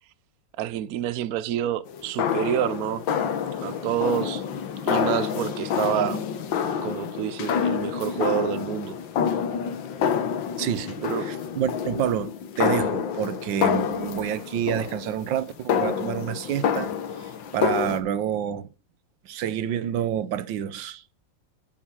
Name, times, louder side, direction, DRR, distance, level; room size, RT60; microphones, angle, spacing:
voice 1, 0.6-3.0 3.6-4.4 4.9-6.2 6.8-9.0 11.0-11.3, right 11 dB, 65° right, 0.9 m, -28 dB
sound 1, 1.9-18.0, left 7 dB, 85° left, 1.8 m, -28 dB
voice 2, 10.6-16.9 17.2-18.7 19.2-21.0, right 10 dB, 80° right, 1.5 m, -28 dB
9.9 x 6.3 x 6.1 m
omnidirectional pair, 2.0 m